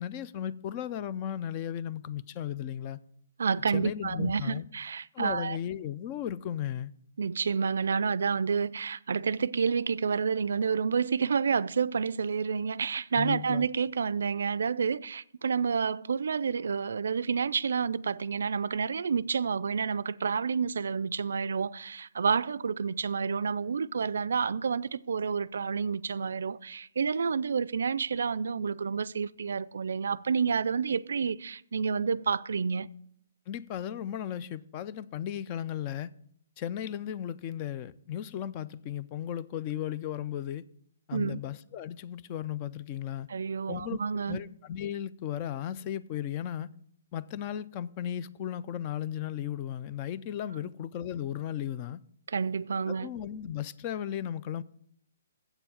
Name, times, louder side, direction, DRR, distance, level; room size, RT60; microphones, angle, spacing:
voice 1, 0.0-3.0 3.7-4.7 5.1-6.9 13.1-13.7 33.5-36.1 36.6-40.6 41.1-43.3 43.7-44.0 44.3-46.7 47.1-52.0 52.9-54.6, left 10 dB, 25° left, 0.3 m, -35 dB
voice 2, 3.4-5.6 7.2-32.9 41.1-41.4 43.3-44.4 52.3-53.1, right 6 dB, 75° right, 0.3 m, -29 dB
7.9 x 6.9 x 7.1 m
hypercardioid pair, 165°, 0 cm